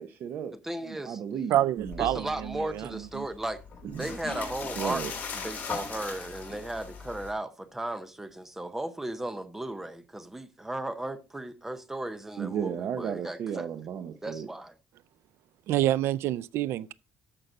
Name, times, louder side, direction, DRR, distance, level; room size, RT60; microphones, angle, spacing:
voice 1, 0.0-0.5 0.9-2.0 3.8-4.1 4.8-5.1 12.4-14.5, right 8 dB, 55° right, 0.8 m, -34 dB
voice 2, 0.6-1.2 2.0-3.6 4.0-5.0 5.3-13.7 14.2-14.7, right 1 dB, 10° right, 0.8 m, -36 dB
voice 3, 1.5-2.9 3.2-3.3 15.7-16.9, right 13 dB, 75° right, 0.4 m, -27 dB
sound 1, 1.8-7.3, left 5 dB, 40° left, 3.0 m, -39 dB
13.5 x 5.8 x 3.9 m
cardioid pair, 155°, 4 cm